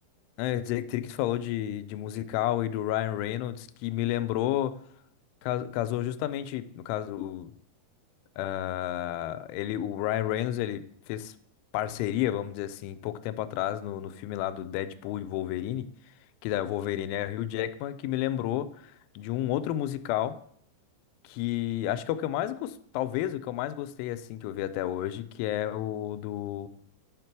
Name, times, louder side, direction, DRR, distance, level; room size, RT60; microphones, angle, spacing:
voice 1, 0.4-4.8 5.4-7.5 8.4-11.3 11.7-15.9 16.4-20.4 21.2-26.7, left 12 dB, 90° left, 12 dB, 3.0 m, -31 dB
9.5 x 5.9 x 4.6 m, 0.69 s
omnidirectional pair, 5.4 m